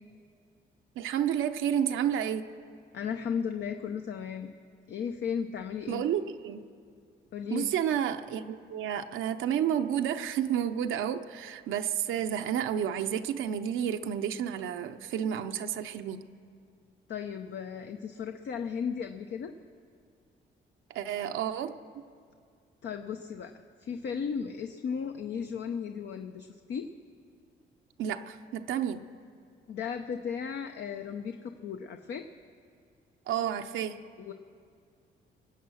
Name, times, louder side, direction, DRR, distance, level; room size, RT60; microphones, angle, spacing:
voice 1, 1.0-2.5 5.9-6.6 7.5-16.3 20.9-22.0 28.0-29.1 33.3-34.0, right 9 dB, 80° right, 7 dB, 0.7 m, -31 dB
voice 2, 2.9-4.5 4.9-6.0 7.3-7.8 17.1-19.5 22.8-23.5 23.8-26.9 29.7-32.3 34.2-34.3, left 7 dB, 65° left, 6 dB, 0.7 m, -35 dB
22.0 x 8.5 x 6.3 m, 2.2 s
cardioid pair, 90°, 20 cm